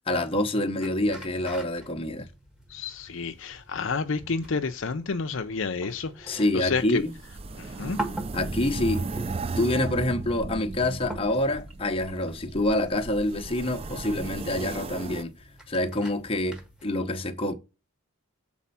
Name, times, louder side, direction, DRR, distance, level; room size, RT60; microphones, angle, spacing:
voice 1, 0.1-2.3 6.3-7.1 8.3-9.1 9.6-15.3 15.7-17.5, left 1 dB, 25° left, 0.9 m, -27 dB
sound 1, 0.8-16.9, right 1 dB, 5° right, 1.2 m, -44 dB
voice 2, 2.7-7.0 7.6-8.0, left 4 dB, 60° left, 0.6 m, -30 dB
sound 2, 6.8-15.2, right 3 dB, 25° right, 0.4 m, -35 dB
7.2 x 4.2 x 5.5 m
head